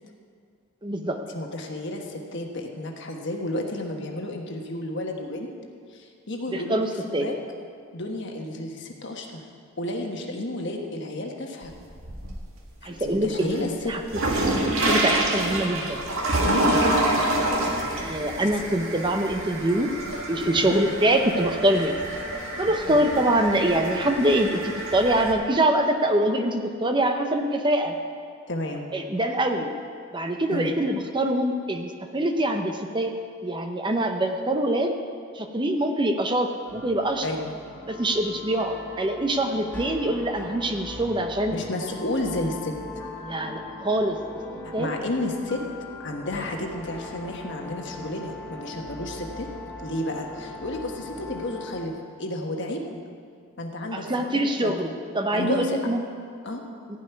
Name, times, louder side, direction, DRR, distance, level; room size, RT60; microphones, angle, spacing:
voice 1, 0.8-1.2 6.5-7.3 12.8-14.0 14.8-16.0 18.0-19.9 20.3-22.0 22.6-28.0 28.9-29.7 30.1-33.1 33.4-35.0 35.3-37.3 37.9-41.6 43.2-44.2 44.7-44.9 53.9-56.0, right 1 dB, 20° right, 5 dB, 0.7 m, -24 dB
voice 2, 1.3-5.5 5.9-7.3 7.9-9.4 9.8-11.7 12.8-14.0 16.4-16.8 18.1-18.2 20.5-20.8 22.9-23.0 28.5-28.9 30.5-30.7 37.2-37.4 41.5-43.0 44.8-45.6 46.0-49.5 49.8-51.9 52.2-53.0 53.6-54.7 55.3-55.8 56.4-56.6, left 1 dB, 55° left, 2 dB, 1.4 m, -31 dB
sound 1, 11.6-12.6 13.0-25.3, right 1 dB, 65° right, 1.8 m, -27 dB
sound 2, 36.7-51.9, left 2 dB, 10° left, 1.3 m, -40 dB
15.0 x 5.5 x 9.5 m, 2.3 s
head